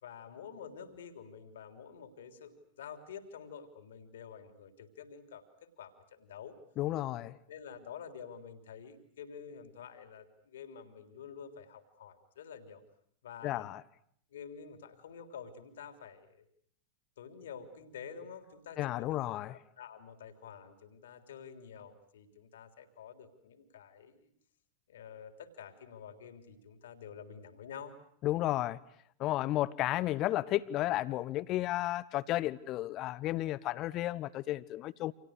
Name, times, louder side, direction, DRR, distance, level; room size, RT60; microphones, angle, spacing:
voice 1, 0.0-6.6 7.5-12.8 13.2-13.7 14.3-16.5 17.2-24.3 24.9-28.0, left 7 dB, 60° left, 7 dB, 3.5 m, -49 dB
voice 2, 6.8-7.4 13.4-13.8 18.8-19.6 28.2-28.8 29.2-35.1, left 15 dB, 35° left, 17 dB, 1.1 m, -33 dB
30.0 x 27.5 x 6.6 m, 0.65 s
figure-of-eight pair, 90°, 0 cm